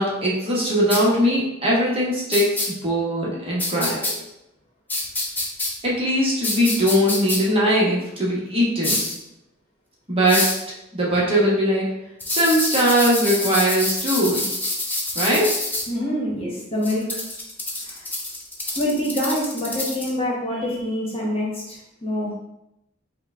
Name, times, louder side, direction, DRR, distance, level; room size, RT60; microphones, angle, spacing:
voice 1, 0.0-4.0 5.8-9.0 10.1-10.4 10.9-11.9 12.3-14.5 15.1-15.6, equal, 30° right, -5 dB, 1.0 m, -20 dB
sound 1, 0.9-1.0 2.3-2.7 3.6-4.1 4.9-5.7 6.4-7.4 8.8-9.2 10.3-10.6 12.2-15.8 16.8-20.1, left 2 dB, 10° left, 0.7 m, -26 dB
voice 2, 15.9-17.0 17.8-18.0 18.7-22.3, left 1 dB, 30° left, -4 dB, 1.1 m, -26 dB
5.4 x 2.2 x 3.6 m, 0.87 s
head